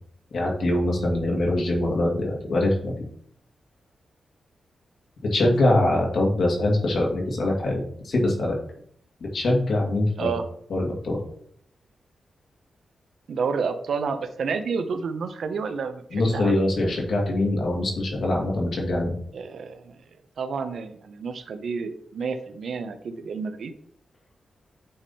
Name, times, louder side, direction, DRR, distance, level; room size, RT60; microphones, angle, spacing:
voice 1, 0.3-2.9 5.3-8.6 9.3-10.3 10.7-11.2 16.1-19.1, left 1 dB, 70° left, -1 dB, 2.0 m, -23 dB
voice 2, 13.3-16.6 19.3-20.0 20.4-23.7, right 5 dB, 75° right, 8 dB, 0.8 m, -30 dB
7.8 x 3.6 x 4.2 m, 0.65 s
cardioid pair, 95°, 0 cm